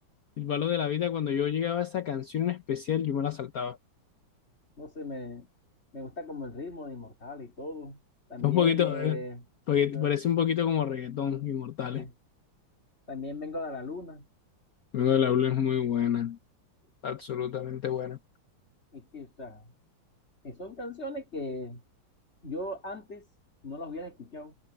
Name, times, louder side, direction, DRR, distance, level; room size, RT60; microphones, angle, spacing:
voice 1, 0.4-3.8 8.4-9.2 9.7-12.0 14.9-16.4 17.0-18.2, left 9 dB, 55° left, 1.2 m, -28 dB
voice 2, 4.8-5.5 5.9-8.0 8.3-9.4 9.8-10.1 11.9-12.1 13.1-14.3 18.9-19.7 20.4-21.8 22.4-23.3 23.6-24.5, left 2 dB, 35° left, 3.8 m, -38 dB
omnidirectional pair, 2.1 m